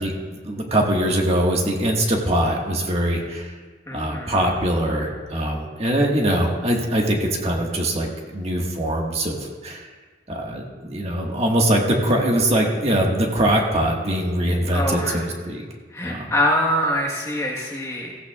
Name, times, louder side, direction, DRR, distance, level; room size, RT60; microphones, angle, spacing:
voice 1, 0.0-3.6 3.9-9.9 10.3-15.6 16.0-16.3, right 1 dB, 35° right, -1 dB, 1.6 m, -22 dB
voice 2, 3.9-4.5 14.7-15.2 15.9-18.2, equal, 15° left, -1 dB, 1.3 m, -24 dB
16.0 x 15.5 x 2.4 m, 1.4 s
head